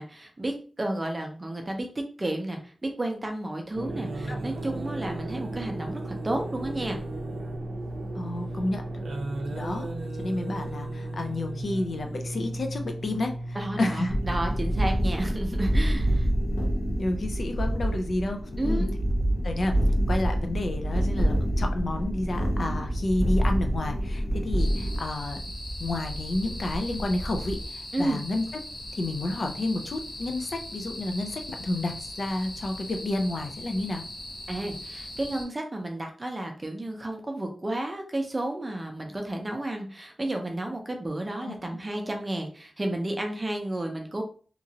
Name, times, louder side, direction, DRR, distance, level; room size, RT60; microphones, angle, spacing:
voice 1, 0.0-7.0 13.5-16.3 18.6-18.9 27.9-28.2 34.5-44.2, right 1 dB, 20° right, 2 dB, 0.5 m, -32 dB
sound 1, 3.7-15.1, right 1 dB, 70° right, 0.5 m, -35 dB
voice 2, 8.1-8.8 9.5-9.9 10.2-14.1 17.0-18.4 18.6-18.9 19.4-19.8 20.1-25.4 25.8-28.4 28.9-34.0 41.4-41.5, left 2 dB, 50° left, 4 dB, 0.4 m, -30 dB
sound 2, 14.1-27.7, equal, 85° left, 0.8 m, -27 dB
sound 3, 24.6-35.4, left 1 dB, 70° left, 1.1 m, -40 dB
2.9 x 2.4 x 2.7 m, 0.40 s
wide cardioid pair, 155°, 0 cm